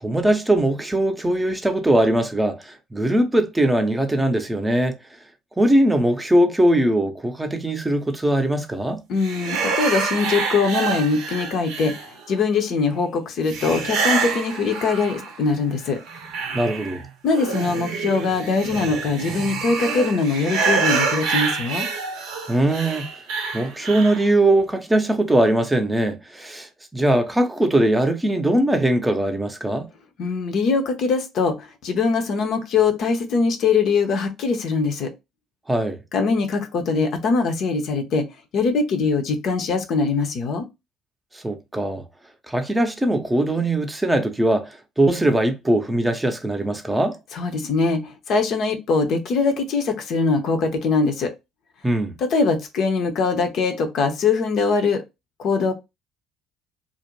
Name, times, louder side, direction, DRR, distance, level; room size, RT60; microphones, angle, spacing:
voice 1, 0.0-4.9 5.6-9.0 16.5-17.0 22.5-23.1 23.5-29.9 35.7-36.0 41.3-42.0 42.5-44.7 45.0-47.2 51.8-52.2, right 1 dB, 15° right, 0.6 m, -20 dB
voice 2, 9.1-11.9 12.3-16.0 17.2-21.9 30.2-35.1 36.1-38.3 38.5-40.7 47.3-51.3 52.2-55.0 55.4-55.7, left 4 dB, 60° left, 0.6 m, -22 dB
sound 1, 9.2-12.4 13.5-15.5 15.8-24.3, right 5 dB, 70° right, 0.6 m, -27 dB
2.4 x 2.1 x 3.0 m
hypercardioid pair, 55°, 0 cm